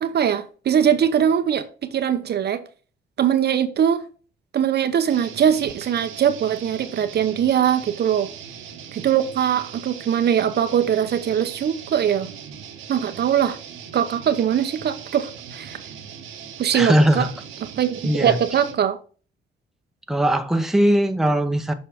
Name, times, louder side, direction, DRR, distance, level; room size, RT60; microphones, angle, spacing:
voice 1, 0.0-2.6 3.2-4.0 4.5-8.3 8.9-12.3 12.9-13.6 13.9-15.8 16.6-17.3 17.8-19.0, right 9 dB, 55° right, 0.7 m, -21 dB
sound 1, 5.1-18.8, right 8 dB, 85° right, 1.2 m, -40 dB
voice 2, 16.7-17.3 18.0-18.4 20.1-21.7, equal, ahead, 0.8 m, -19 dB
6.9 x 5.3 x 3.6 m
cardioid pair, 90°, 20 cm